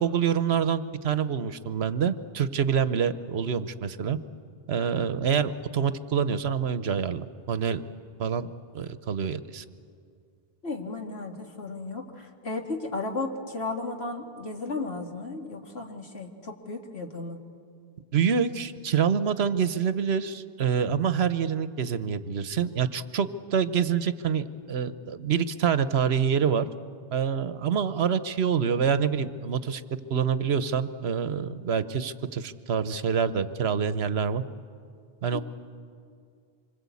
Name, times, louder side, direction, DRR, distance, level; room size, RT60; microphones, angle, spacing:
voice 1, 0.0-4.2 4.7-7.8 8.2-8.5 8.7-9.6 18.1-26.7 27.1-29.8 30.1-34.4 35.2-35.4, right 7 dB, 75° right, 13 dB, 1.1 m, -26 dB
voice 2, 10.6-17.4 35.3-35.4, left 3 dB, 70° left, 2 dB, 2.4 m, -34 dB
26.5 x 24.5 x 8.4 m, 2.3 s
omnidirectional pair, 1.1 m